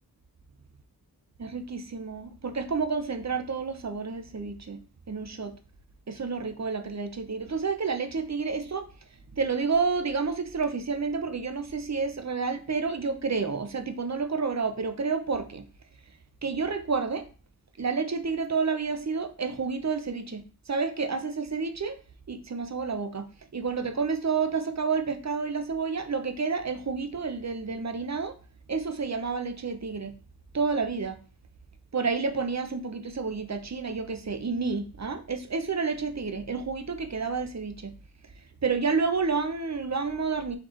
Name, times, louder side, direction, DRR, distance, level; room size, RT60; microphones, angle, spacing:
voice 1, 1.4-5.6 6.1-8.9 9.3-15.7 16.4-17.3 17.8-22.0 22.3-28.4 28.7-30.1 30.5-31.2 31.9-37.9 38.2-38.3 38.6-40.6, right 4 dB, 45° right, 0.7 m, -30 dB
4.4 x 3.0 x 3.8 m
wide cardioid pair, 50°, 39 cm